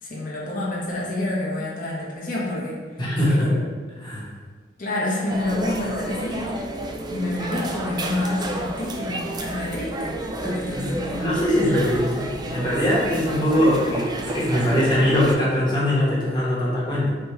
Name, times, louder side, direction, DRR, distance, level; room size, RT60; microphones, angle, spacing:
voice 1, 0.0-2.8 3.3-3.7 4.8-6.6 7.1-11.4, left 1 dB, 50° left, -5 dB, 1.1 m, -28 dB
voice 2, 3.0-3.5 4.0-4.3 10.7-10.9 11.2-17.1, equal, 25° left, -7 dB, 1.2 m, -21 dB
sound 1, 5.3-15.3, right 1 dB, 25° right, 0.3 m, -31 dB
5.0 x 2.4 x 3.1 m, 1.4 s
head